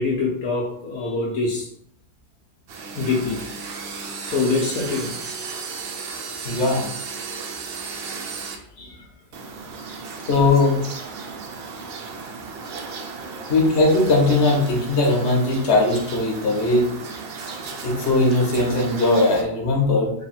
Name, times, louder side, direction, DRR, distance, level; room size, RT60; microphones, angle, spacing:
voice 1, 0.0-1.7 2.9-3.4 4.2-5.2 8.8-9.0 13.5-13.6, left 3 dB, 70° left, -3 dB, 1.1 m, -25 dB
sound 1, 2.7-8.6 9.3-19.4, right 4 dB, 85° right, 0.5 m, -35 dB
voice 2, 6.4-6.9 10.3-10.8 13.5-16.9 17.8-20.1, left 2 dB, 45° left, -2 dB, 1.2 m, -19 dB
3.5 x 2.3 x 4.2 m, 0.69 s
omnidirectional pair, 1.7 m